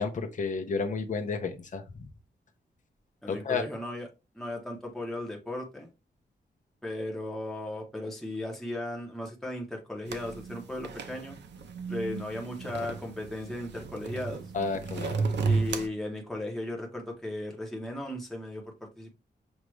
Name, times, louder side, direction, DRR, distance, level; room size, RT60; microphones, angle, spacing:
voice 1, 0.0-2.1 3.3-3.6 14.5-15.4, left 4 dB, 45° left, 0.7 m, -32 dB
voice 2, 3.2-4.1 4.3-5.9 6.8-11.4 11.9-14.4 15.4-19.1, left 1 dB, ahead, 0.9 m, -36 dB
sound 1, 10.1-15.9, right 4 dB, 85° right, 0.7 m, -33 dB
6.2 x 2.4 x 3.1 m
wide cardioid pair, 180°, 18 cm